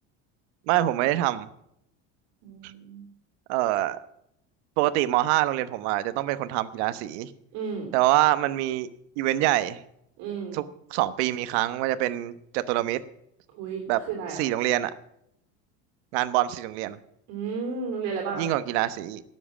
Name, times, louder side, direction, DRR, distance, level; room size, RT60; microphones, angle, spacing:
voice 1, 0.7-1.5 2.6-2.7 3.5-4.0 4.8-7.3 7.9-8.9 9.2-9.8 10.5-10.6 10.9-13.0 13.9-14.0 14.3-14.9 16.1-17.0 18.4-19.2, right 15 dB, 70° right, 13 dB, 1.1 m, -25 dB
voice 2, 2.4-3.0 7.5-7.9 10.2-10.6 13.5-13.8 14.1-14.4 17.3-18.5, right 5 dB, 50° right, 1 dB, 3.4 m, -32 dB
18.5 x 7.9 x 6.3 m, 0.75 s
cardioid pair, 180°, 35 cm